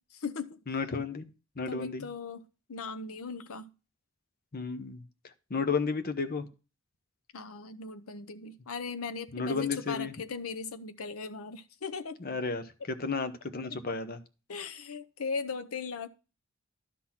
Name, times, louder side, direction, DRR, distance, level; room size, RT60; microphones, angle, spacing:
voice 1, 0.1-0.6 1.7-2.4 2.7-3.7 7.3-12.2 14.5-16.1, left 5 dB, 85° left, 0.7 m, -38 dB
voice 2, 0.7-1.3 1.6-2.1 4.5-6.5 9.3-10.1 12.2-14.2, left 4 dB, 45° left, 0.8 m, -33 dB
11.5 x 4.0 x 5.9 m
head